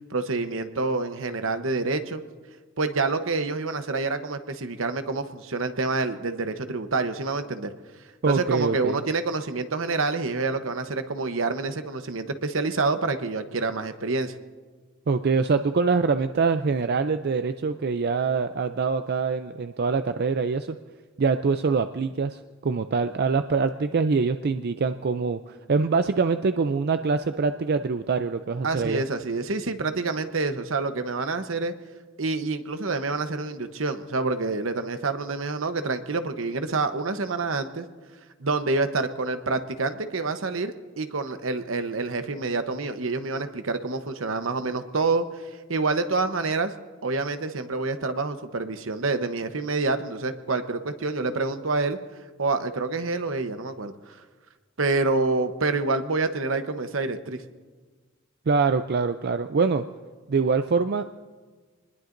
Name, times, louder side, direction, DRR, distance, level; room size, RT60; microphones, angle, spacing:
voice 1, 0.1-2.2 2.8-7.7 8.3-14.4 28.6-31.7 32.2-37.9 38.4-45.4 45.7-46.7 47.0-52.0 52.4-54.2 54.8-57.4, right 3 dB, 75° right, 9 dB, 1.0 m, -27 dB
voice 2, 8.2-9.0 15.1-20.8 21.2-29.0 58.5-59.8 60.3-61.1, right 4 dB, 50° right, 9 dB, 0.5 m, -24 dB
26.5 x 20.5 x 2.6 m, 1.4 s
head